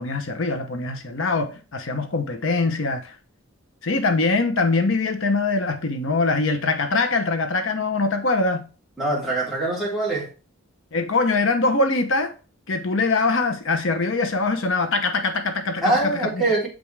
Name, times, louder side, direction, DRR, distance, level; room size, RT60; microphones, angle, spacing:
voice 1, 0.0-3.1 3.8-8.7 10.9-12.3 12.7-16.4, left 3 dB, 60° left, 0.9 m, -23 dB
voice 2, 9.0-10.3 15.8-16.7, right 2 dB, ahead, 3.5 m, -23 dB
7.7 x 5.3 x 3.4 m
head